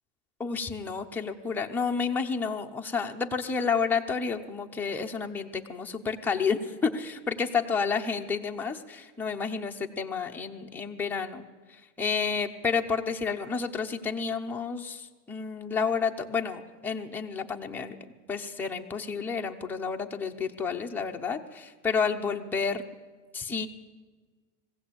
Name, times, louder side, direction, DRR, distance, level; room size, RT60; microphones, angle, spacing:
voice 1, 0.4-11.5 11.7-18.0 18.3-22.8 23.3-23.7, left 5 dB, 5° left, 1 dB, 0.8 m, -30 dB
21.5 x 16.0 x 8.7 m, 1.4 s
supercardioid pair, 165°, 39 cm